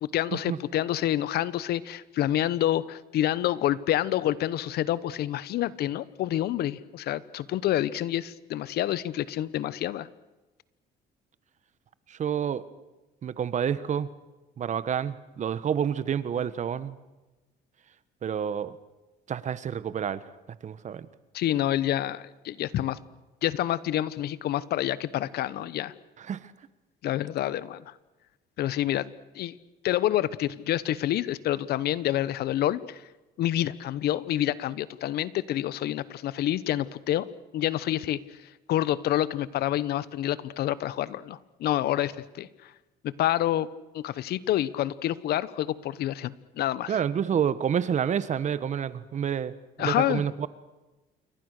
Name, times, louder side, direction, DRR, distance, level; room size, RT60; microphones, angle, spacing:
voice 1, 0.0-10.1 21.3-23.0 23.4-25.9 27.0-27.8 28.6-29.1 29.3-29.5 29.8-33.0 33.4-37.3 37.5-38.2 38.7-42.5 43.0-43.7 43.9-47.0 49.8-50.2, left 13 dB, 70° left, 18 dB, 1.0 m, -28 dB
voice 2, 12.1-12.6 13.2-14.1 14.6-16.9 18.2-18.7 19.3-20.2 20.6-21.1 26.2-26.4 46.9-49.5 49.8-50.5, right 8 dB, 45° right, 15 dB, 1.3 m, -28 dB
28.5 x 23.5 x 6.6 m, 1.1 s
cardioid pair, 110°, 17 cm